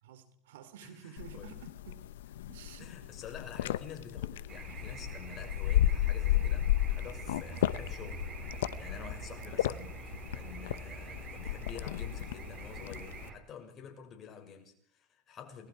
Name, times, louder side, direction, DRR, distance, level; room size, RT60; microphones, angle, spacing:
voice 1, 0.0-2.1 2.5-3.0, right 9 dB, 80° right, 3.3 m, -51 dB
sound 1, 1.2-13.3, left 13 dB, 85° left, 0.9 m, -33 dB
voice 2, 2.8-10.0 10.3-15.7, left 7 dB, 35° left, 6.4 m, -49 dB
sound 2, 4.5-13.3, right 6 dB, 35° right, 4.5 m, -46 dB
30.0 x 22.0 x 4.8 m
supercardioid pair, 110°, 0 cm